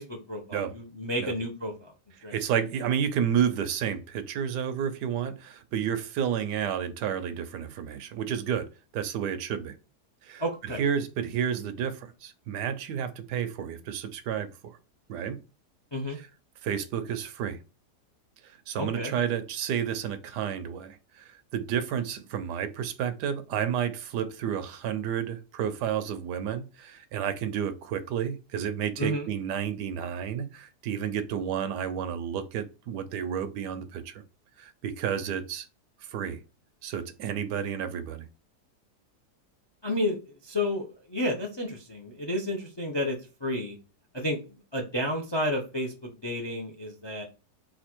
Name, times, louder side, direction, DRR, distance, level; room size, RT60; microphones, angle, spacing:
voice 1, 0.0-1.9 2.2-2.3 10.4-10.8 15.9-16.2 18.7-19.1 29.0-29.3 39.8-40.2 40.4-43.8 44.1-44.4 44.7-47.2, left 1 dB, 35° left, 2 dB, 0.4 m, -31 dB
voice 2, 2.3-8.7 8.9-9.7 10.2-14.8 15.1-15.4 16.1-16.3 16.6-17.6 18.4-34.2 34.6-35.7 36.1-36.4 36.8-38.3, right 8 dB, 90° right, 10 dB, 1.3 m, -31 dB
4.3 x 2.6 x 4.3 m, 0.32 s
omnidirectional pair, 1.7 m